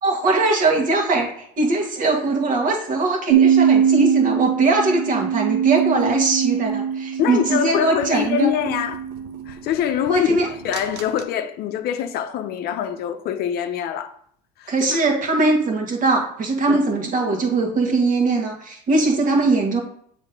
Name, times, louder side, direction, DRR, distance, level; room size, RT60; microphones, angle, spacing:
voice 1, 0.0-8.5 10.1-10.5 14.7-19.8, right 3 dB, 45° right, 1.7 m, -21 dB
sound 1, 3.3-9.6 10.7-11.0, right 8 dB, 60° right, 0.7 m, -21 dB
voice 2, 7.2-9.0 9.5-14.1 14.6-15.0 16.7-16.8, left 9 dB, 55° left, 0.6 m, -24 dB
7.1 x 3.3 x 5.2 m
supercardioid pair, 100°, 20 cm